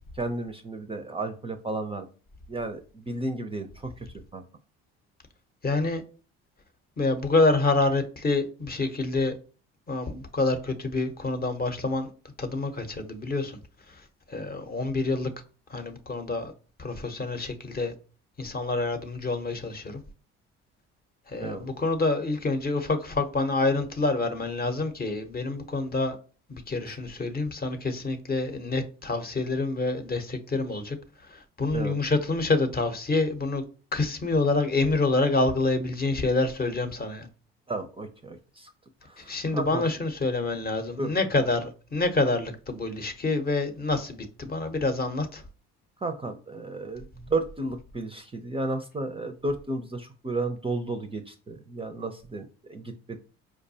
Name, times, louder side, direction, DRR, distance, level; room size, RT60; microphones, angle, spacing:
voice 1, 0.1-2.1 2.5-4.1 4.3-4.4 21.4-21.7 31.7-32.0 37.7-38.7 39.1-39.8 41.0-41.1 46.0-53.2, right 2 dB, 20° right, 0.5 m, -33 dB
voice 2, 5.6-6.0 7.0-9.3 9.9-12.1 12.4-13.6 13.9-15.3 15.7-16.5 16.8-17.9 18.4-20.0 21.3-26.2 26.5-33.6 33.9-37.3 39.2-45.4, left 3 dB, 30° left, 0.8 m, -27 dB
4.7 x 2.2 x 2.7 m
hypercardioid pair, 65°, 30 cm